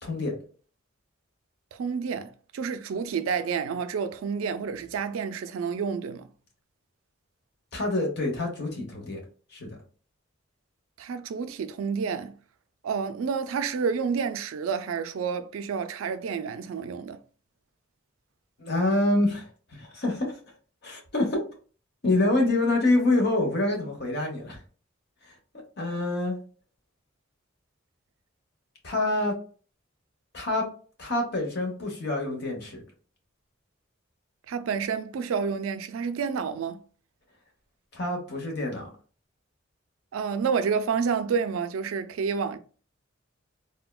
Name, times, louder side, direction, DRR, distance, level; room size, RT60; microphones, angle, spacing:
voice 1, 0.0-0.3 7.7-9.2 9.5-9.8 18.6-20.4 20.8-21.4 22.0-24.6 25.2-25.3 25.8-26.4 28.8-29.3 30.3-30.7 31.0-32.8 37.9-38.9, left 2 dB, 55° left, 0.9 m, -26 dB
voice 2, 1.7-6.3 11.0-12.4 12.8-17.2 34.5-36.8 40.1-42.6, right 6 dB, 90° right, 0.3 m, -29 dB
3.5 x 2.2 x 2.2 m
head